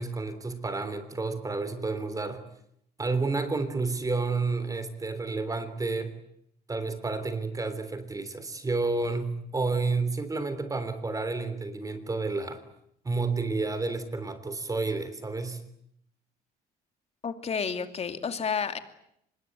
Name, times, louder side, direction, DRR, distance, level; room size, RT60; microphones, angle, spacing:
voice 1, 0.0-2.4 3.0-6.1 6.7-12.6 13.1-15.6, right 3 dB, 20° right, 11 dB, 3.4 m, -30 dB
voice 2, 17.2-18.8, left 6 dB, 40° left, 9 dB, 2.6 m, -30 dB
25.0 x 21.5 x 9.5 m, 0.74 s
cardioid pair, 110°, 17 cm